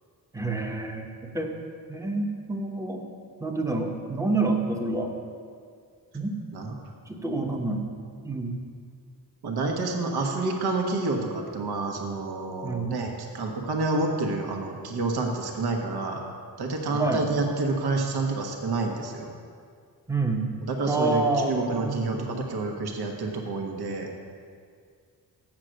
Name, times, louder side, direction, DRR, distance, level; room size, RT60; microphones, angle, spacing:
voice 1, 0.3-1.5 1.9-3.0 3.4-5.1 6.1-6.4 7.1-7.8 8.2-8.6 12.6-13.0 16.9-17.2 20.1-20.5 20.9-22.3, right 3 dB, 10° right, 2 dB, 0.8 m, -28 dB
voice 2, 9.4-16.2 16.6-19.3 20.7-24.1, right 3 dB, 75° right, 2 dB, 1.2 m, -28 dB
7.9 x 7.4 x 6.3 m, 2.2 s
wide cardioid pair, 150°, 39 cm